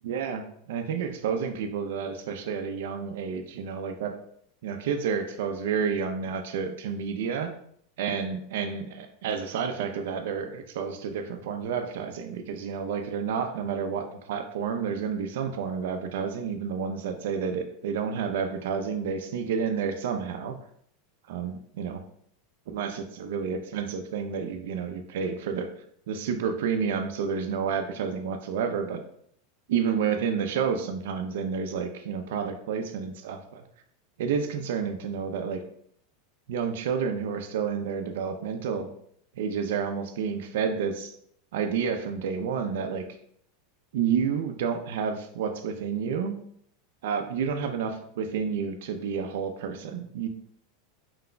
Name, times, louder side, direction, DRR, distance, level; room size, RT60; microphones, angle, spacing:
voice 1, 0.0-4.1 4.6-7.5 8.0-20.5 21.3-22.0 22.7-25.7 26.1-29.0 29.7-33.6 34.2-35.6 36.5-38.9 39.4-41.1 41.5-43.0 43.9-46.3 47.0-50.3, right 6 dB, 75° right, 6 dB, 0.5 m, -30 dB
4.6 x 3.8 x 2.2 m, 0.66 s
supercardioid pair, 145°, 0 cm